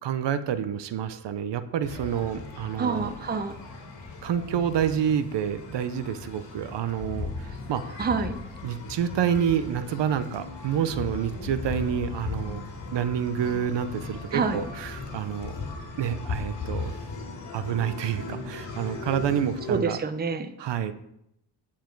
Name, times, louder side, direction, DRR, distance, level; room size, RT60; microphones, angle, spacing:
voice 1, 0.0-3.1 4.2-8.0 8.6-12.6 12.9-15.6 16.0-16.9 17.5-20.0 20.6-20.9, right 8 dB, 65° right, 12 dB, 0.8 m, -28 dB
sound 1, 1.8-19.8, left 4 dB, 65° left, 2.5 m, -37 dB
voice 2, 2.8-3.5 8.0-8.4 14.3-14.6 19.7-20.5, right 5 dB, 20° right, 9 dB, 0.6 m, -27 dB
9.2 x 7.3 x 4.6 m, 0.79 s
cardioid pair, 120°, 46 cm